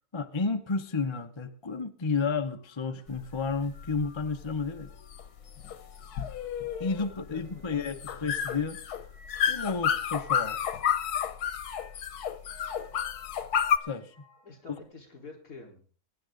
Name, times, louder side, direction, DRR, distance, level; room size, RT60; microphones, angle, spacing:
voice 1, 0.0-4.9 6.8-8.8 9.5-10.6 13.9-14.1 14.7-14.8, left 4 dB, 25° left, 0.6 m, -31 dB
sound 1, 2.4-14.8, equal, 80° right, 7.9 m, -58 dB
sound 2, 3.1-13.8, left 8 dB, 80° left, 1.4 m, -31 dB
voice 2, 7.3-8.3 14.4-15.8, left 4 dB, 60° left, 4.5 m, -48 dB
21.5 x 9.9 x 3.9 m
omnidirectional pair, 1.6 m